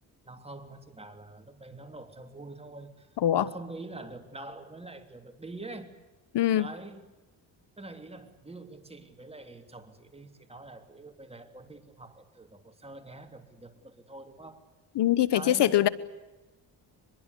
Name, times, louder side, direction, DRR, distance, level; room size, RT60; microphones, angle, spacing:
voice 1, 0.2-3.1 3.3-5.9 6.5-7.1 7.8-14.7 15.3-15.9, right 2 dB, 15° right, 3.3 m, -45 dB
voice 2, 6.3-6.7 14.9-15.9, left 12 dB, 70° left, 1.1 m, -23 dB
24.5 x 22.0 x 8.4 m
cardioid pair, 95°, 43 cm